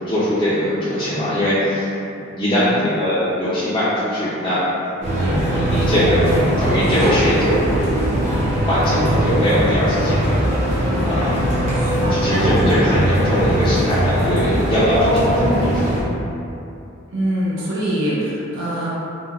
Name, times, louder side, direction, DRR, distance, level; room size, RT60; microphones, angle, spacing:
voice 1, 0.1-1.9 2.2-4.7 5.4-7.7 8.6-10.8 11.0-11.5 12.1-15.9, equal, 25° left, -13 dB, 0.4 m, -21 dB
voice 2, 2.4-2.9 6.9-7.3 11.7-12.2 17.1-18.9, equal, 75° right, -8 dB, 0.7 m, -25 dB
sound 1, 5.0-16.0, equal, 35° right, 0.6 m, -19 dB
3.3 x 2.2 x 2.3 m, 2.7 s
head